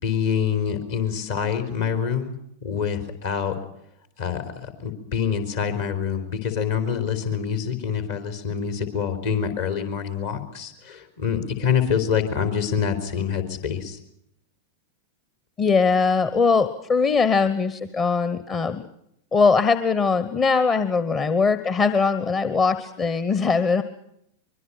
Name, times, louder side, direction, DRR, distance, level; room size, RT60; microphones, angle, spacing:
voice 1, 0.0-2.4 2.6-3.6 4.2-14.0, left 7 dB, 55° left, 8 dB, 4.0 m, -26 dB
voice 2, 15.6-18.8 19.3-23.8, left 5 dB, 25° left, 12 dB, 1.2 m, -21 dB
24.0 x 23.0 x 5.8 m, 0.75 s
figure-of-eight pair, 90°, 0 cm